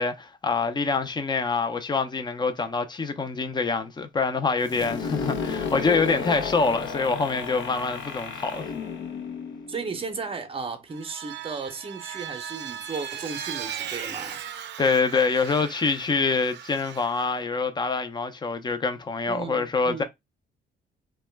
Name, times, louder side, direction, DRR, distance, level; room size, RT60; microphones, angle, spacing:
voice 1, 0.0-8.7 14.8-20.0, left 4 dB, 20° left, 0.5 m, -25 dB
sound 1, 4.6-10.3, left 6 dB, 70° left, 0.6 m, -33 dB
voice 2, 9.7-14.4 19.3-20.0, right 4 dB, 30° right, 0.6 m, -35 dB
Vehicle, 10.9-17.3, right 9 dB, 65° right, 0.5 m, -37 dB
2.2 x 2.1 x 3.2 m
cardioid pair, 90°, 20 cm